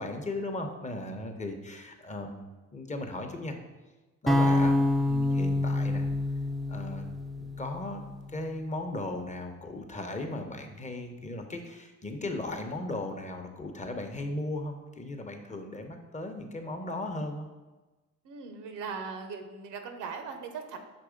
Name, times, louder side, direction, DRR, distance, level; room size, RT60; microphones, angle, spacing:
voice 1, 0.0-3.6 4.2-4.8 5.0-6.1 6.7-7.1 7.4-8.0 8.3-17.5, left 2 dB, 25° left, 4 dB, 0.8 m, -37 dB
sound 1, 4.3-8.4, left 1 dB, ahead, 0.4 m, -27 dB
voice 2, 18.2-20.8, right 5 dB, 85° right, 6 dB, 0.8 m, -39 dB
6.0 x 3.1 x 5.0 m, 1.2 s
cardioid pair, 90°, 30 cm